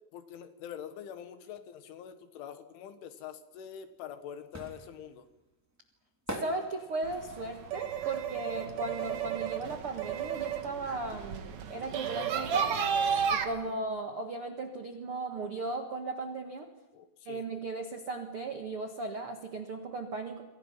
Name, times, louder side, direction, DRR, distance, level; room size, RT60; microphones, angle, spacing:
voice 1, 0.1-5.3 12.2-12.4 13.6-13.8 16.9-17.4, left 9 dB, 85° left, 9 dB, 4.0 m, -45 dB
sound 1, 3.7-9.5 9.8-11.4 11.6-11.7, right 1 dB, 5° right, 2.3 m, -44 dB
voice 2, 6.4-12.9 13.3-16.7 17.2-20.4, right 3 dB, 85° right, 4 dB, 1.2 m, -36 dB
sound 2, 7.0-13.4, right 7 dB, 60° right, 1.9 m, -33 dB
28.5 x 25.0 x 5.6 m, 1.1 s
omnidirectional pair, 5.4 m